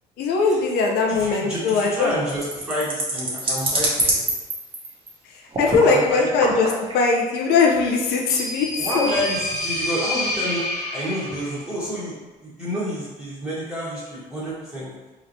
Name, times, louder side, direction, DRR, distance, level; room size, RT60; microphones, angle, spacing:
voice 1, 0.2-2.1 5.6-6.7 6.9-8.7 8.9-9.1, left 4 dB, 75° left, 0 dB, 0.6 m, -20 dB
voice 2, 1.1-4.2 5.7-6.6 8.8-10.6 10.9-12.1 12.4-14.9, equal, 5° right, -11 dB, 1.4 m, -29 dB
sound 1, 1.7-5.1 5.5-6.1 6.4-6.9, right 1 dB, 30° right, 1.1 m, -25 dB
sound 2, 7.9-11.6, left 1 dB, 20° left, 1.5 m, -28 dB
4.2 x 3.1 x 2.7 m, 1.2 s
cardioid pair, 110°, 17 cm